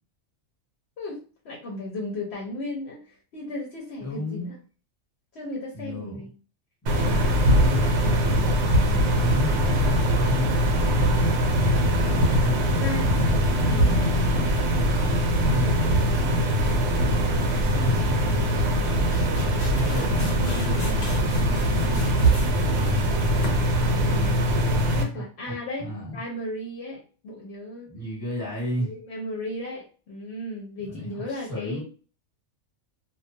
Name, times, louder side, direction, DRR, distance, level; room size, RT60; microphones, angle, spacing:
voice 1, 1.0-3.0 3.3-4.6 5.3-6.3 7.0-7.1 8.7-9.1 12.7-13.3 13.7-14.0 15.8-16.1 23.8-24.4 25.0-27.9 28.8-31.8, left 1 dB, 65° left, -2 dB, 1.0 m, -35 dB
voice 2, 4.0-4.5 5.7-6.2 6.8-7.8 8.9-11.5 12.3-12.6 13.4-15.1 15.4-15.8 16.4-19.1 19.7-22.1 25.1-26.1 27.8-28.9 30.8-31.8, left 1 dB, 15° left, -4 dB, 1.1 m, -34 dB
sound 1, 6.9-25.0, equal, 75° right, 0.9 m, -22 dB
sound 2, 19.0-24.5, left 2 dB, 45° left, 0.6 m, -41 dB
2.3 x 2.2 x 2.6 m, 0.38 s
omnidirectional pair, 1.2 m